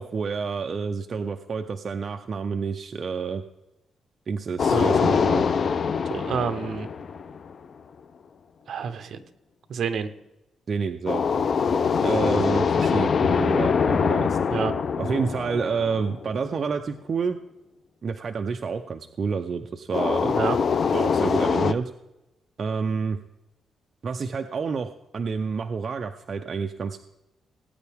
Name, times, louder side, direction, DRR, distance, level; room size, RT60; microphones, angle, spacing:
voice 1, 0.0-3.4 4.3-5.4 10.7-11.2 12.0-14.4 15.0-17.4 18.0-20.4 20.9-21.9 22.6-23.2 24.0-27.0, right 5 dB, 40° right, 6 dB, 0.6 m, -29 dB
sound 1, 4.6-7.7 11.1-16.4 19.9-21.7, left 6 dB, 45° left, 0.5 m, -23 dB
voice 2, 6.1-6.9 8.7-9.2 9.7-10.1 14.5-14.7 20.3-20.6, right 6 dB, 60° right, 10 dB, 1.0 m, -28 dB
18.5 x 9.2 x 3.5 m, 0.95 s
cardioid pair, 135°, 0 cm